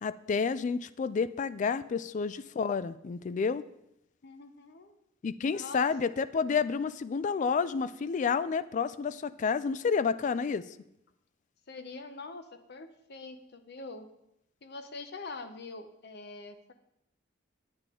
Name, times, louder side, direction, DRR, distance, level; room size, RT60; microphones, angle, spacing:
voice 1, 0.0-3.6 5.2-10.6, left 5 dB, 40° left, 16 dB, 0.3 m, -30 dB
voice 2, 4.2-4.9 5.4-5.8 11.7-14.1 14.6-16.7, left 3 dB, 55° left, 9 dB, 0.7 m, -44 dB
9.8 x 8.7 x 3.7 m, 0.81 s
head